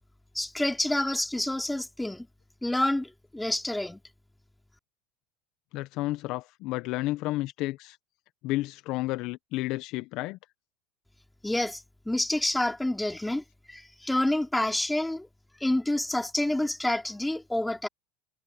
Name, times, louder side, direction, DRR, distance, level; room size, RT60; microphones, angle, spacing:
voice 1, 0.3-2.3 2.6-4.0 11.4-15.3 15.6-17.9, left 1 dB, 5° left, 4.3 m, -28 dB
voice 2, 5.7-8.0 8.4-10.4, left 18 dB, 60° left, 0.9 m, -31 dB
supercardioid pair, 100°, 0 cm